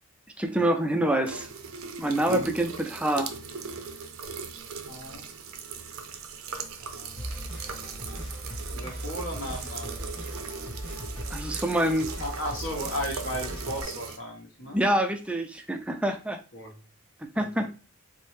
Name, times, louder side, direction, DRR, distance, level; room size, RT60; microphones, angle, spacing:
voice 1, 0.4-1.5 2.0-3.3 11.3-12.1 14.7-16.4 17.4-17.7, right 1 dB, 5° right, 5 dB, 0.3 m, -26 dB
sound 1, 1.2-14.2, right 5 dB, 75° right, 0.5 m, -38 dB
voice 2, 2.2-2.6 4.9-5.3 6.8-7.1 8.7-10.0 12.2-14.8 16.5-16.8 17.3-17.7, equal, 60° left, 0 dB, 1.1 m, -36 dB
sound 2, 7.2-13.8, equal, 15° left, 1.3 m, -38 dB
4.4 x 2.1 x 3.2 m, 0.32 s
head